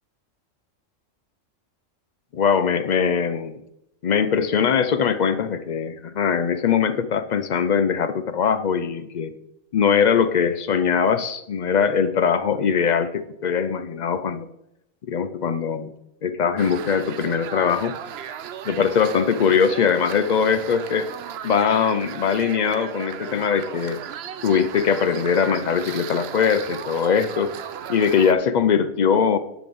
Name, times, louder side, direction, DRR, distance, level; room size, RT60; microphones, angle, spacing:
voice 1, 2.3-3.6 4.0-9.3 9.7-14.5 15.1-15.9 16.2-18.0 18.7-21.1 21.4-24.0 24.4-27.5 27.9-29.4, left 7 dB, 65° left, 11 dB, 0.4 m, -21 dB
sound 1, 16.6-28.3, right 9 dB, 60° right, 0.7 m, -36 dB
10.5 x 4.0 x 7.6 m, 0.84 s
omnidirectional pair, 1.4 m